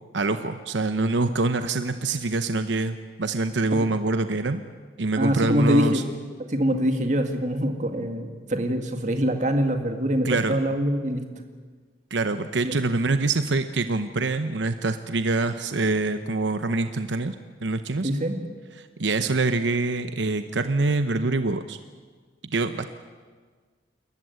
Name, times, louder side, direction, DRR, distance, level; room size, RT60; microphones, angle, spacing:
voice 1, 0.1-4.6 5.0-6.0 10.2-10.6 12.1-17.3 17.6-18.1 18.8-21.8 22.5-22.9, right 3 dB, 85° right, 9 dB, 0.9 m, -25 dB
voice 2, 5.2-6.0 6.5-11.2 12.6-12.8 18.0-18.4, equal, 40° right, 5 dB, 2.1 m, -24 dB
28.5 x 14.0 x 9.5 m, 1.5 s
head